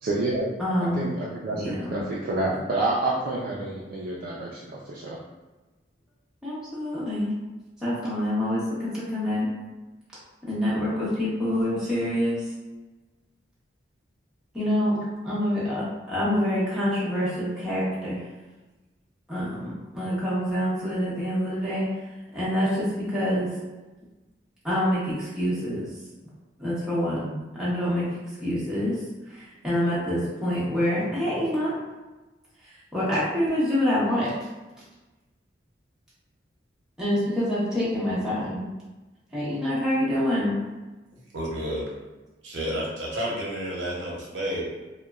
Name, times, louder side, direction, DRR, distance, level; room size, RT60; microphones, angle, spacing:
voice 1, 0.0-0.5 1.0-5.2, right 2 dB, 50° right, -5 dB, 0.3 m, -28 dB
voice 2, 0.6-1.1 1.5-2.0 6.4-7.3 7.8-9.5 10.5-12.4 14.5-15.0 15.2-18.2 19.3-21.9 22.3-23.5 24.6-25.9 26.6-28.1 28.3-29.0 29.3-31.7 32.6-34.3 37.0-38.6 39.3-40.6, equal, 5° right, -10 dB, 0.8 m, -26 dB
voice 3, 41.3-41.8 42.4-44.7, equal, 75° right, -4 dB, 0.7 m, -30 dB
2.9 x 2.1 x 2.3 m, 1.2 s
head